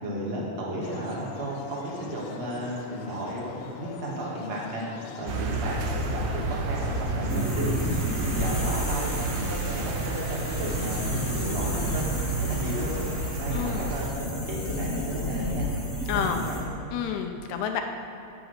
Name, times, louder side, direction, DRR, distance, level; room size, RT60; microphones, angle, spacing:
voice 1, 0.0-4.8 5.2-7.9 8.2-11.0 11.3-13.1 13.4-16.6, right 1 dB, 25° right, -5 dB, 1.4 m, -34 dB
sound 1, 0.8-13.3, left 6 dB, 90° left, 2.3 m, -44 dB
sound 2, 5.3-14.1, right 3 dB, 90° right, 2.4 m, -30 dB
sound 3, 7.3-16.6, left 1 dB, 20° left, 1.4 m, -32 dB
voice 2, 16.1-16.4 16.9-17.8, left 8 dB, 75° left, 4 dB, 1.9 m, -29 dB
8.9 x 6.0 x 6.5 m, 2.8 s
omnidirectional pair, 3.9 m